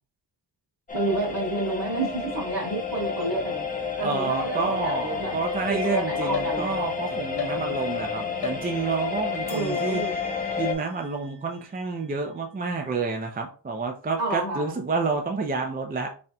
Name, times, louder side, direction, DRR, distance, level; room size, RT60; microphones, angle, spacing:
sound 1, 0.9-10.7, left 5 dB, 20° left, 0.6 m, -30 dB
voice 1, 0.9-3.7 4.0-5.4 5.7-6.9 9.5-10.2 14.2-14.8, right 2 dB, 60° right, -2 dB, 2.0 m, -29 dB
voice 2, 4.0-10.0 10.6-16.1, right 4 dB, 20° right, 3 dB, 0.4 m, -29 dB
sound 2, 6.3-7.0 7.4-8.0 8.4-9.1 9.5-12.9, left 6 dB, 55° left, 1.2 m, -40 dB
4.3 x 3.7 x 2.2 m, 0.38 s
wide cardioid pair, 160°, 45 cm